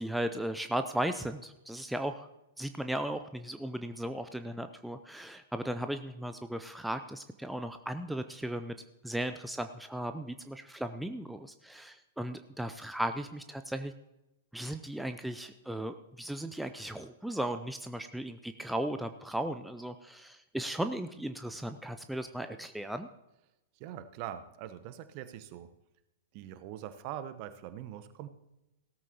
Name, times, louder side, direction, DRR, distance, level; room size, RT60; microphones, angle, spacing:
voice 1, 0.0-2.3 2.6-8.7 9.0-13.9 14.5-23.1, right 1 dB, ahead, 8 dB, 0.5 m, -36 dB
voice 2, 23.8-25.7 26.3-28.3, right 11 dB, 40° right, 12 dB, 0.9 m, -42 dB
17.0 x 13.5 x 2.9 m, 0.93 s
figure-of-eight pair, 100°, 0 cm